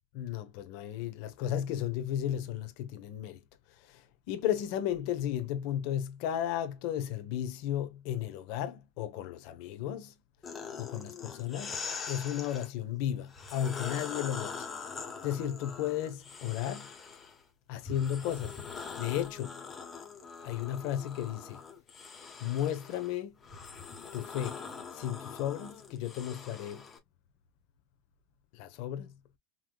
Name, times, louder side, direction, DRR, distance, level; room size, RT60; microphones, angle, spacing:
voice 1, 0.1-3.4 3.8-10.1 10.8-14.7 15.2-16.9 17.7-18.6 19.0-19.6 20.4-21.6 22.4-23.4 24.1-24.6 24.9-26.9 28.5-29.1, left 11 dB, 55° left, 1.0 m, -34 dB
sound 1, 10.4-12.7 13.3-17.4 17.8-27.0, left 5 dB, 20° left, 1.3 m, -43 dB
5.7 x 3.1 x 2.3 m
cardioid pair, 175°, 0 cm